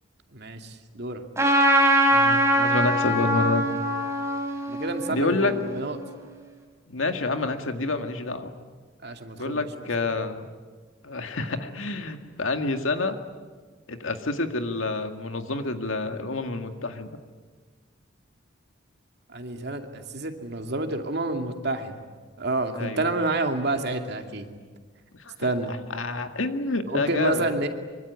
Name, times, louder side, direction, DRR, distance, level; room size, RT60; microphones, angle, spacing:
voice 1, 0.3-1.2 4.7-6.0 9.0-9.6 19.3-22.0 22.4-24.5 25.4-25.7 26.9-27.7, right 2 dB, 55° right, 5 dB, 2.4 m, -29 dB
Trumpet, 1.4-6.0, right 1 dB, 15° right, 4.0 m, -23 dB
voice 2, 2.1-3.6 5.1-5.5 6.9-8.5 9.4-10.5 11.0-13.2 13.9-17.1 22.7-23.1 25.2-25.3 25.9-27.7, left 3 dB, 85° left, 7 dB, 2.1 m, -28 dB
25.0 x 24.5 x 9.6 m, 1.5 s
head